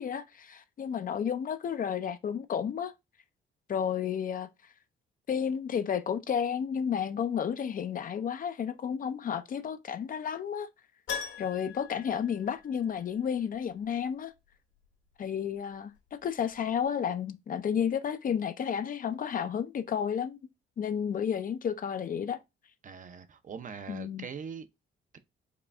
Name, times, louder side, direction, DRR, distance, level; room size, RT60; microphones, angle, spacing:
voice 1, 0.0-2.9 3.7-4.5 5.3-10.7 11.4-14.3 15.2-20.4 20.8-22.4 23.9-24.2, left 8 dB, 45° left, 0.5 m, -32 dB
Keyboard (musical), 11.1-13.1 13.4-13.5 16.2-16.3 16.5-16.6, left 7 dB, 70° left, 1.7 m, -40 dB
voice 2, 22.8-24.7, right 6 dB, 40° right, 0.6 m, -42 dB
4.9 x 2.3 x 3.3 m
cardioid pair, 90°, 20 cm